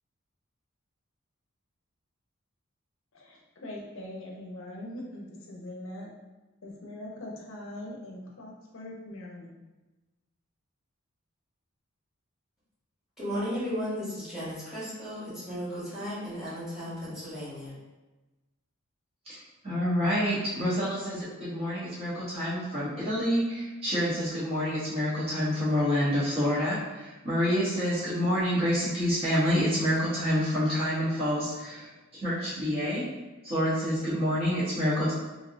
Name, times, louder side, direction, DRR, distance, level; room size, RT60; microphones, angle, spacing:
voice 1, 3.1-6.1 6.6-9.6, left 1 dB, 70° left, -2 dB, 0.7 m, -42 dB
voice 2, 13.2-17.7, equal, ahead, -11 dB, 1.4 m, -35 dB
voice 3, 19.6-33.1 33.4-35.1, equal, 25° right, -10 dB, 0.9 m, -28 dB
3.3 x 2.6 x 2.5 m, 1.1 s
head